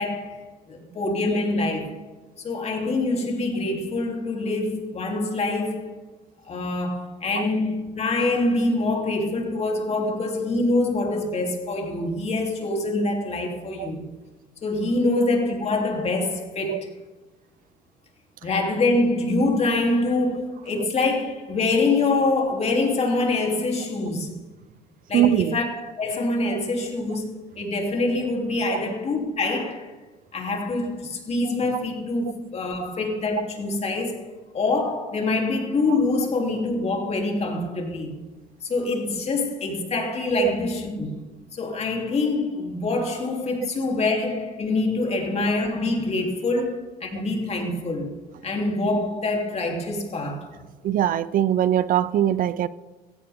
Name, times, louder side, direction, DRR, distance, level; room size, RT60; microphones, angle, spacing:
voice 1, 0.0-2.0 2.4-5.9 6.4-14.1 14.6-16.9 18.4-24.4 25.1-29.9 30.3-34.3 34.5-38.1 38.6-41.2 41.5-48.1 48.4-50.5, left 2 dB, 40° left, 3.2 m, -25 dB
voice 2, 25.1-25.6 28.7-28.9 40.4-40.5 50.8-52.7, right 11 dB, 55° right, 0.5 m, -21 dB
16.5 x 15.5 x 3.7 m
cardioid pair, 110°, 17 cm